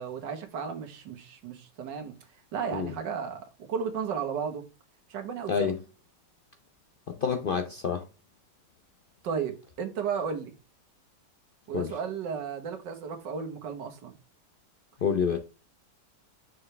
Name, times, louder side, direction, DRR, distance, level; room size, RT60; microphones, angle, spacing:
voice 1, 0.0-2.1 2.5-4.6 5.1-5.5 9.2-10.5 11.7-14.2, right 6 dB, 85° right, 1.8 m, -34 dB
voice 2, 7.1-8.0 11.7-11.9 15.0-15.4, left 6 dB, 80° left, 0.4 m, -28 dB
6.4 x 4.7 x 3.2 m
omnidirectional pair, 1.9 m